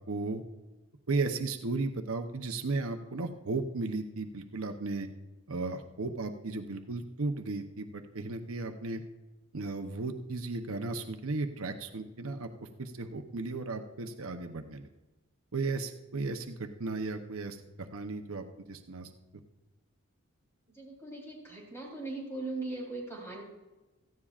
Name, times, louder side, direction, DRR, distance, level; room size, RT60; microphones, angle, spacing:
voice 1, 0.1-0.4 1.1-5.1 5.5-9.0 9.5-12.5 12.8-14.9 15.5-19.1, right 3 dB, 75° right, 6 dB, 0.8 m, -35 dB
voice 2, 20.7-23.4, right 2 dB, 10° left, -2 dB, 3.7 m, -39 dB
17.0 x 14.5 x 2.5 m, 1.1 s
head